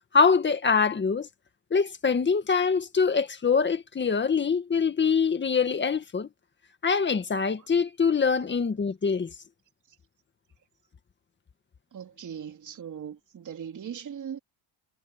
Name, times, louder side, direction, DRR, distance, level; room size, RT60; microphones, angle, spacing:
voice 1, 0.1-1.3 1.7-6.3 6.8-9.3, left 5 dB, 20° left, 1.8 m, -24 dB
voice 2, 11.9-14.4, right 8 dB, 40° right, 3.3 m, -39 dB
cardioid pair, 145°, 48 cm